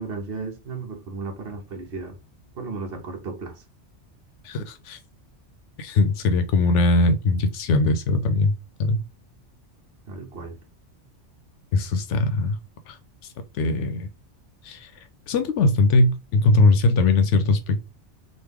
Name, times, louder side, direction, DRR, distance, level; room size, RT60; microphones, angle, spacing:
voice 1, 0.0-2.2 2.5-3.6 10.1-10.6, right 4 dB, 60° right, 1.0 m, -34 dB
voice 2, 4.4-5.0 5.8-8.5 8.9-9.0 11.7-12.5 12.9-13.0 13.6-14.1 14.6-14.9 15.3-17.9, left 2 dB, 80° left, 0.9 m, -20 dB
3.2 x 2.4 x 3.4 m
omnidirectional pair, 1.2 m